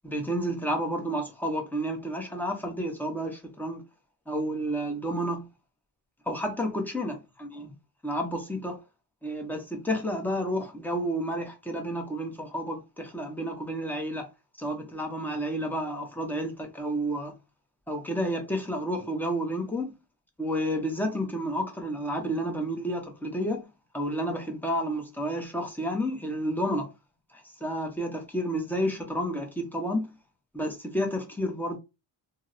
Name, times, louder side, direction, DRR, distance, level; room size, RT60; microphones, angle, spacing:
voice 1, 0.0-3.8 4.3-5.5 6.3-7.7 8.0-8.8 9.2-14.3 14.6-17.3 17.9-19.9 20.4-23.7 23.9-26.9 27.3-30.1 30.5-31.8, equal, 5° left, 0.6 m, -30 dB
2.8 x 2.0 x 3.6 m
wide cardioid pair, 170°, 47 cm